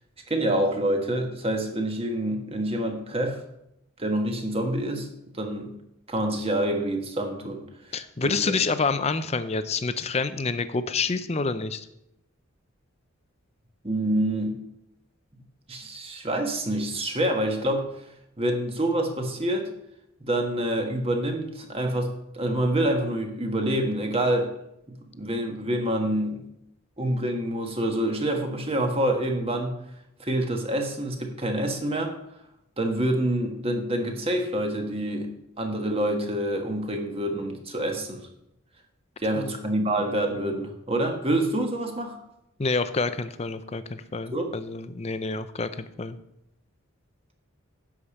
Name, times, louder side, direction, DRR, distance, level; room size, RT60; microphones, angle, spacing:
voice 1, 0.3-3.4 4.0-5.1 5.3-5.7 6.1-7.6 8.2-8.6 13.8-14.6 15.7-17.9 18.4-19.7 20.2-24.5 24.9-26.4 27.0-29.8 30.2-32.1 32.8-35.3 35.6-38.3 39.2-42.2 44.3-44.5, right 1 dB, 25° right, 4 dB, 1.3 m, -27 dB
voice 2, 7.9-11.9 39.4-39.6 42.6-46.2, left 4 dB, 30° left, 12 dB, 0.5 m, -28 dB
11.0 x 5.0 x 7.1 m, 0.81 s
head